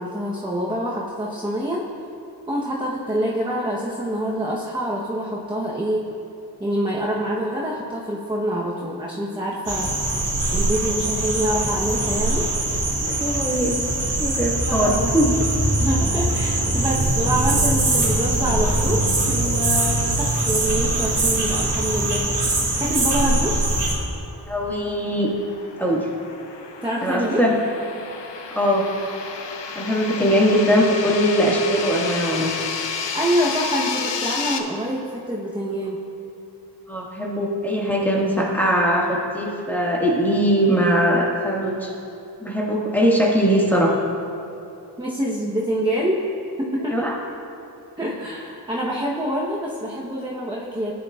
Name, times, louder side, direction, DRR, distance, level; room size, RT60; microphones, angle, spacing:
voice 1, 0.0-1.9 2.5-6.1 6.6-9.9 10.5-12.5 14.7-15.1 15.8-22.5 22.8-23.6 26.8-27.4 33.1-36.0 45.0-46.2 46.6-47.1 48.0-50.9, equal, 10° right, -4 dB, 1.0 m, -26 dB
sound 1, 9.7-23.9, right 2 dB, 75° right, 1.6 m, -22 dB
voice 2, 13.2-13.8 14.2-15.3 24.5-25.3 25.8-26.1 27.0-27.6 28.5-28.9 29.8-32.5 36.9-41.9 42.4-44.0 46.9-47.1, equal, 5° left, -4 dB, 1.8 m, -21 dB
sound 2, 24.1-34.6, left 5 dB, 80° left, 0.8 m, -31 dB
14.5 x 9.6 x 2.4 m, 2.7 s
wide cardioid pair, 65°, 42 cm